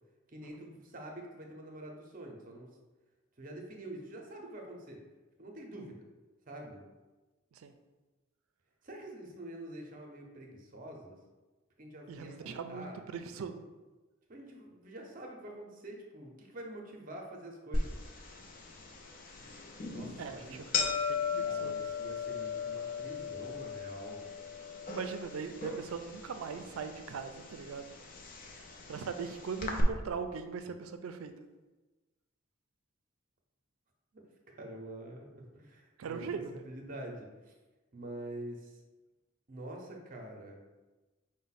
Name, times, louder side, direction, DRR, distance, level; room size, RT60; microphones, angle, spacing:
voice 1, 0.3-2.8 3.4-5.0 5.4-6.0 6.5-6.8 8.8-11.2 11.8-13.0 14.3-18.0 19.9-20.6 21.4-24.2 34.1-36.3 36.5-37.5 37.9-38.8 39.5-40.6, right 1 dB, 40° right, 1 dB, 0.6 m, -46 dB
voice 2, 12.1-13.7 20.2-21.9 24.9-27.9 28.9-31.3 36.0-36.6, right 5 dB, 85° right, 8 dB, 0.4 m, -40 dB
sound 1, 17.7-29.8, left 5 dB, 40° left, 0.5 m, -38 dB
4.9 x 2.1 x 4.0 m, 1.2 s
head